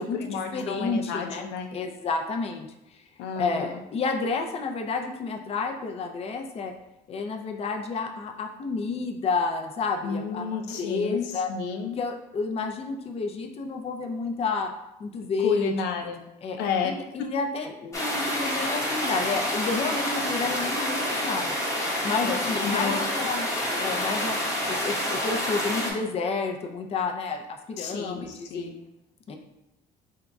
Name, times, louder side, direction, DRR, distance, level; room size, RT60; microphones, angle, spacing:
voice 1, 0.0-1.7 3.2-3.8 10.0-12.0 15.4-16.2 16.6-16.9 22.2-23.1 27.8-28.8, left 5 dB, 90° left, 4 dB, 0.5 m, -31 dB
voice 2, 0.5-2.7 3.4-6.7 7.1-11.5 12.0-14.7 15.0-15.7 16.4-16.6 16.8-21.6 22.0-23.5 23.8-24.4 24.7-28.7 29.3-29.4, left 4 dB, 35° left, 3 dB, 0.5 m, -30 dB
sound 1, 17.9-25.9, left 1 dB, 20° left, 1.0 m, -28 dB
3.6 x 2.3 x 3.9 m, 0.89 s
cardioid pair, 110°, 17 cm